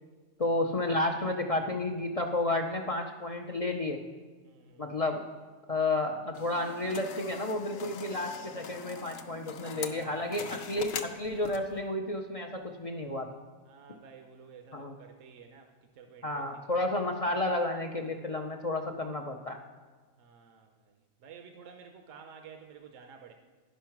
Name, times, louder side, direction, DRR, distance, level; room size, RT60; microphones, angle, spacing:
voice 1, 0.4-4.0 4.8-5.2 5.7-13.3 14.7-14.9 16.2-19.6, left 2 dB, 45° left, 2 dB, 0.5 m, -31 dB
voice 2, 4.4-5.0 9.7-10.8 13.6-16.9 20.2-23.3, right 6 dB, 75° right, 5 dB, 1.1 m, -52 dB
sound 1, 6.3-11.8, left 7 dB, 90° left, 1.1 m, -42 dB
11.5 x 5.5 x 5.8 m, 1.4 s
omnidirectional pair, 1.3 m